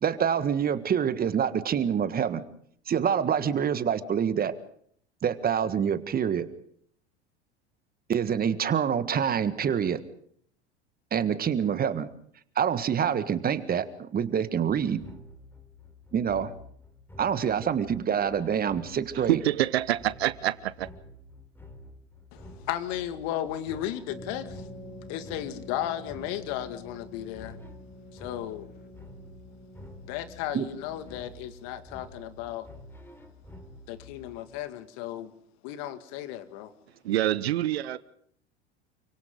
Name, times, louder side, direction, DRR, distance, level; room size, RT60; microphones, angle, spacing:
voice 1, 0.0-2.4 2.9-4.5 5.2-6.5 8.1-10.0 11.1-12.1 12.6-15.0 16.1-16.5 17.2-19.4 30.5-30.7, right 8 dB, 25° right, 13 dB, 1.6 m, -26 dB
sound 1, 14.7-34.6, left 1 dB, 5° left, 3.8 m, -49 dB
voice 2, 19.1-20.9 37.0-38.0, right 13 dB, 65° right, 17 dB, 1.1 m, -26 dB
voice 3, 22.3-24.7 25.1-27.6 28.1-28.7 30.1-32.7 33.9-35.3 35.6-36.7, left 12 dB, 50° left, 10 dB, 2.2 m, -35 dB
sound 2, 24.1-31.6, left 1 dB, 30° left, 4.1 m, -47 dB
29.5 x 25.0 x 3.9 m, 0.64 s
figure-of-eight pair, 80°, 33 cm